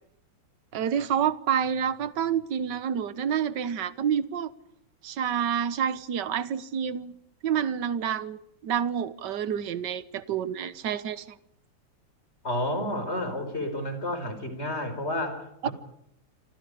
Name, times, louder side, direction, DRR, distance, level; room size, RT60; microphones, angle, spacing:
voice 1, 0.7-4.5 5.0-7.2 7.4-11.2 15.6-15.7, right 8 dB, 70° right, 1.7 m, -28 dB
voice 2, 12.4-15.7, left 1 dB, 35° left, 5.5 m, -31 dB
28.0 x 26.0 x 5.1 m
omnidirectional pair, 2.0 m